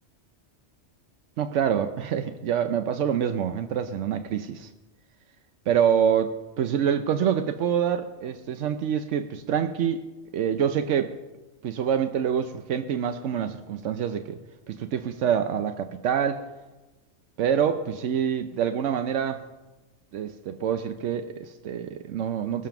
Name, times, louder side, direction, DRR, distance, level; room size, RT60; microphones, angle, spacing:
voice 1, 1.4-4.7 5.7-10.0 10.3-11.1 11.6-14.4 14.7-16.4 17.4-19.4 20.1-22.7, right 8 dB, 85° right, 8 dB, 1.0 m, -26 dB
20.5 x 7.2 x 5.9 m, 1.1 s
omnidirectional pair, 1.2 m